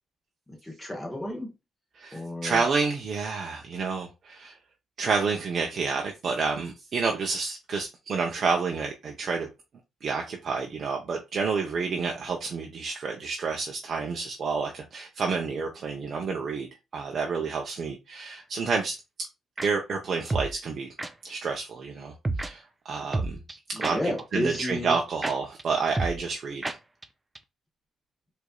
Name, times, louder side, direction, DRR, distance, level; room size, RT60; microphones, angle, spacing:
voice 1, 0.5-1.5 2.1-2.6 23.7-24.9, left 1 dB, 10° left, 1.1 m, -32 dB
voice 2, 2.0-4.5 5.0-9.5 10.0-19.0 19.6-20.9 21.2-22.1 22.4-23.4 23.7-24.0 24.3-26.6, right 4 dB, 55° right, 0.7 m, -29 dB
sound 1, 19.6-19.7 20.3-20.5 21.0-21.1 22.2-22.5 23.1-24.2 24.5-24.6 24.9-25.0 25.2-25.3 25.6-25.7 25.9-26.4 26.6-26.8 27.0-27.1 27.4-27.5, right 2 dB, 20° right, 0.4 m, -30 dB
4.9 x 2.7 x 2.2 m
cardioid pair, 90°, 0 cm